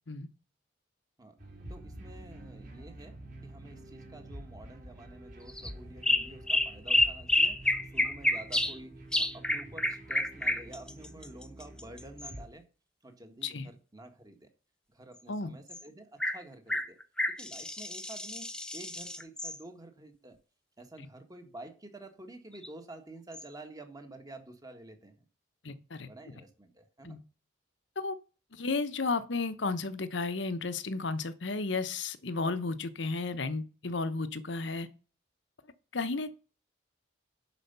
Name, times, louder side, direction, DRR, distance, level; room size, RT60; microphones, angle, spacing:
sound 1, 1.4-12.5, right 1 dB, 45° right, 3.7 m, -48 dB
voice 1, 1.7-12.6 13.0-14.5 14.9-17.0 17.3-20.4 20.8-25.2 26.1-27.2, right 2 dB, 20° right, 1.6 m, -50 dB
sound 2, 5.5-5.7 6.0-8.8 9.1-12.3 15.7-15.8 16.2-16.4 16.7-19.6 22.6-22.7 23.3-23.4, left 1 dB, 5° left, 0.8 m, -29 dB
voice 2, 25.6-26.1 27.0-27.2 28.0-28.1 28.5-34.9 35.9-36.3, left 3 dB, 70° left, 1.0 m, -33 dB
11.5 x 5.0 x 6.9 m
head